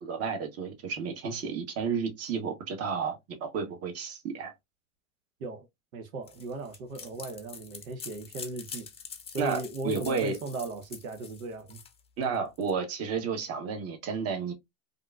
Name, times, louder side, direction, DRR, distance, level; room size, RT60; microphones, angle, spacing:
voice 1, 0.0-4.5 9.4-10.4 12.2-14.5, right 6 dB, 35° right, 1.1 m, -32 dB
voice 2, 5.9-8.9 9.3-11.8, right 2 dB, 85° right, 0.8 m, -37 dB
sound 1, 6.3-12.7, left 6 dB, 15° left, 0.6 m, -45 dB
3.6 x 2.5 x 2.2 m
hypercardioid pair, 110°, 40 cm